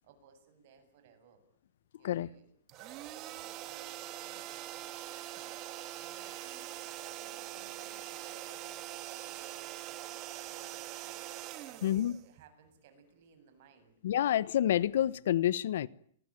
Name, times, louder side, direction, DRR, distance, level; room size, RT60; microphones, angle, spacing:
voice 1, 0.0-1.4 2.0-2.5 2.8-11.9 12.2-14.0, right 7 dB, 50° right, 7.9 m, -61 dB
sound 1, 2.7-12.7, right 14 dB, 30° right, 2.4 m, -43 dB
voice 2, 11.8-12.2 14.0-15.9, left 11 dB, 65° left, 1.1 m, -28 dB
29.5 x 21.0 x 9.2 m
hypercardioid pair, 155°, 0 cm